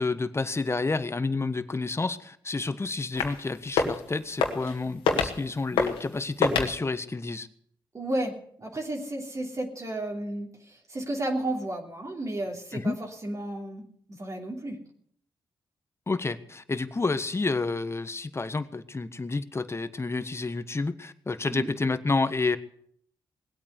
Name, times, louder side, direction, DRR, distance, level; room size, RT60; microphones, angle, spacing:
voice 1, 0.0-7.5 12.7-13.0 16.1-22.6, left 3 dB, 30° left, 12 dB, 1.3 m, -29 dB
sound 1, 3.2-3.4 3.7-4.0 4.4-4.8 5.1-5.4 5.8-6.1 6.4-6.7, left 5 dB, 90° left, 1.9 m, -25 dB
voice 2, 7.9-14.8 21.5-21.7, right 1 dB, 40° right, 0 dB, 3.3 m, -33 dB
19.5 x 8.7 x 8.2 m, 0.65 s
supercardioid pair, 50°, 9 cm